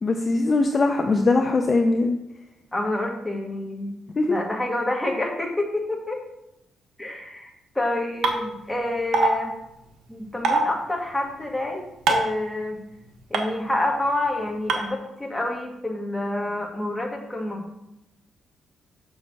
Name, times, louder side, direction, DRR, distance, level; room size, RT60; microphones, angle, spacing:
voice 1, 0.0-2.2 4.2-4.4, left 3 dB, 30° left, 4 dB, 0.6 m, -21 dB
voice 2, 2.7-3.9 4.3-6.2 7.0-9.5 10.1-12.8 13.3-17.6, left 1 dB, 5° left, 0 dB, 1.7 m, -28 dB
sound 1, 8.2-8.3 9.1-9.3 10.4-10.6 12.1-12.3 13.3-13.4 14.7-14.8, right 3 dB, 75° right, 1.4 m, -19 dB
6.4 x 6.3 x 6.0 m, 0.89 s
cardioid pair, 130°, 0 cm